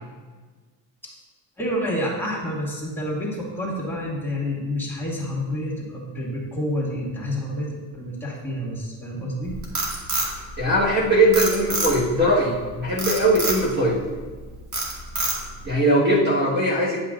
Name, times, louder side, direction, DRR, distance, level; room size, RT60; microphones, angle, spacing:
voice 1, 1.6-7.7 8.0-9.6, equal, 5° left, -5 dB, 2.2 m, -28 dB
Frog, 9.4-11.0 11.3-12.2 13.0-13.6 14.1-14.4 14.7-15.6, right 2 dB, 35° right, 2.1 m, -26 dB
voice 2, 10.6-14.0 15.6-17.0, right 1 dB, 20° right, -6 dB, 1.5 m, -20 dB
10.0 x 5.8 x 2.6 m, 1.4 s
supercardioid pair, 90°, 48 cm